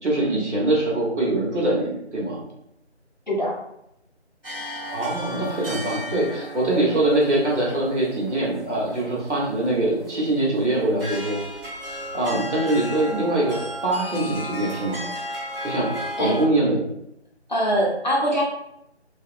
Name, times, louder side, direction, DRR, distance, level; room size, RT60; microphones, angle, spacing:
voice 1, 0.0-2.4 4.9-11.4 11.8-13.6 13.8-15.1 15.6-16.9, right 2 dB, 85° right, -5 dB, 1.3 m, -23 dB
sound 1, 4.4-16.4, equal, 55° right, 0.8 m, -35 dB
voice 2, 17.5-18.4, equal, 40° left, -4 dB, 0.6 m, -22 dB
2.7 x 2.0 x 2.5 m, 0.79 s
figure-of-eight pair, 165°, 34 cm